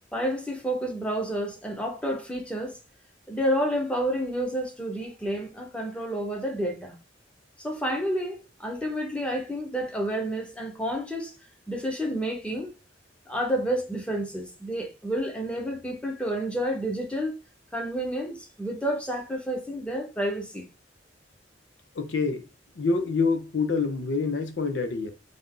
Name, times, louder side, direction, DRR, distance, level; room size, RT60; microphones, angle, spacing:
voice 1, 0.1-2.8 3.3-6.9 7.6-11.3 11.7-12.7 13.3-17.4 17.7-20.7, equal, 5° left, 0.9 m, -30 dB
voice 2, 21.9-22.5 22.8-25.1, left 4 dB, 75° left, 0.6 m, -26 dB
3.4 x 2.6 x 3.7 m
head